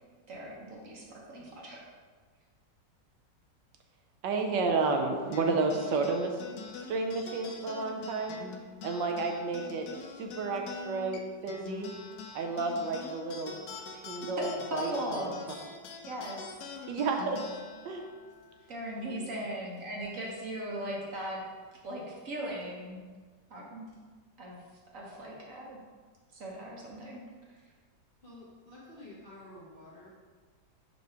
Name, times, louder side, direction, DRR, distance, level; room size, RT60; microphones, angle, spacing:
voice 1, 0.3-1.8 14.4-15.5 16.1-16.4 18.7-21.4 21.8-23.0 23.5-23.9 24.4-24.6 24.9-25.8 26.4-27.2, equal, 50° right, -3 dB, 1.3 m, -38 dB
voice 2, 4.2-6.3 6.9-8.4 8.8-9.9 10.2-11.9 12.3-13.5 14.1-14.9 16.9-17.4 17.8-18.0, right 3 dB, 80° right, 3 dB, 1.3 m, -31 dB
sound 1, 5.3-20.1, left 4 dB, 75° left, 1.1 m, -45 dB
voice 3, 18.5-19.4 28.2-30.1, left 1 dB, 35° left, -7 dB, 1.1 m, -51 dB
5.9 x 3.0 x 5.5 m, 1.5 s
omnidirectional pair, 1.9 m